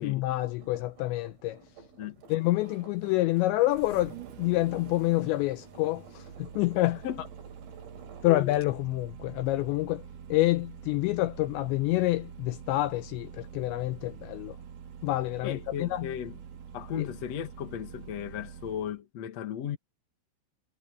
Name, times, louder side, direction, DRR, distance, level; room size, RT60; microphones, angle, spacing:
voice 1, 0.0-1.6 2.3-7.0 8.2-10.0 10.3-14.6 15.0-16.1 17.0-17.1, left 18 dB, 85° left, 2.6 m, -27 dB
Engine starting, 0.6-19.0, right 8 dB, 60° right, 2.2 m, -47 dB
sound 1, 0.6-8.7, right 4 dB, 90° right, 8.6 m, -53 dB
voice 2, 15.4-16.4 16.7-19.8, left 9 dB, 60° left, 1.7 m, -35 dB
omnidirectional pair, 5.7 m